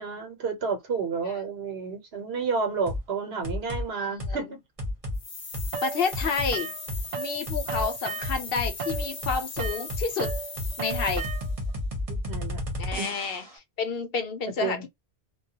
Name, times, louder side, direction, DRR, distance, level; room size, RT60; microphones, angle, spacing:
voice 1, 0.0-4.6 12.1-12.6 13.0-13.1 14.6-14.9, right 5 dB, 80° right, 1.1 m, -31 dB
sound 1, 2.9-3.1 3.4-3.8 4.2-4.4 4.8-5.2 5.5-5.7 6.1-6.5 6.9-7.0 7.5-7.9 8.2-13.5, left 1 dB, 40° right, 0.9 m, -31 dB
voice 2, 3.9-4.5 5.8-6.7 7.2-10.3 10.8-11.2 12.8-13.4 13.8-14.9, left 5 dB, 70° left, 0.8 m, -30 dB
sound 2, 5.1-11.6, left 4 dB, 40° left, 0.7 m, -39 dB
sound 3, 5.7-7.4 7.6-11.7, right 7 dB, 55° right, 0.6 m, -36 dB
2.3 x 2.2 x 2.7 m
omnidirectional pair, 1.0 m